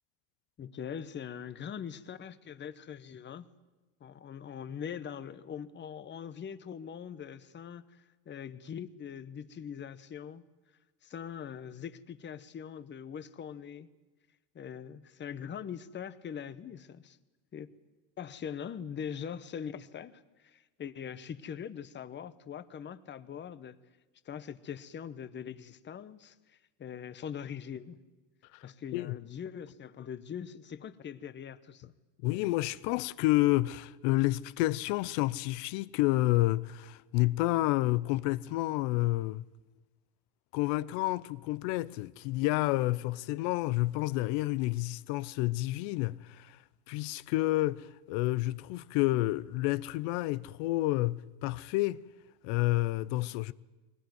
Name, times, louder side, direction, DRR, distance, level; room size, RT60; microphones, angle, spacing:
voice 1, 0.6-3.5 4.0-10.4 11.0-13.9 14.5-17.2 17.5-17.7 18.2-23.8 24.2-28.0 28.6-31.9, left 8 dB, 25° left, 0.9 m, -42 dB
voice 2, 32.2-39.5 40.5-46.6 46.9-52.0 52.4-53.5, left 18 dB, 80° left, 0.7 m, -29 dB
21.5 x 19.0 x 9.6 m
cardioid pair, 140°, 43 cm